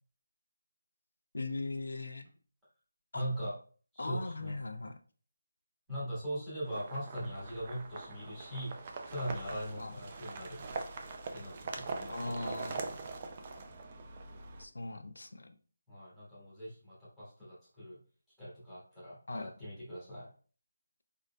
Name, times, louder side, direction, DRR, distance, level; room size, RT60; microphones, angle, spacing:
voice 1, 1.3-2.3 3.1-3.2 4.0-5.0 9.8-9.9 12.1-12.9 14.6-15.5 19.3-19.5, left 2 dB, 80° left, 8 dB, 0.5 m, -39 dB
voice 2, 3.1-3.5 3.9-4.6 5.9-8.7 9.1-10.6 11.3-12.8 15.9-18.0 18.4-20.3, equal, 5° right, -12 dB, 1.5 m, -41 dB
sound 1, 6.6-14.6, right 4 dB, 20° right, 0.4 m, -43 dB
4.5 x 3.8 x 2.2 m, 0.40 s
figure-of-eight pair, 175°, 0 cm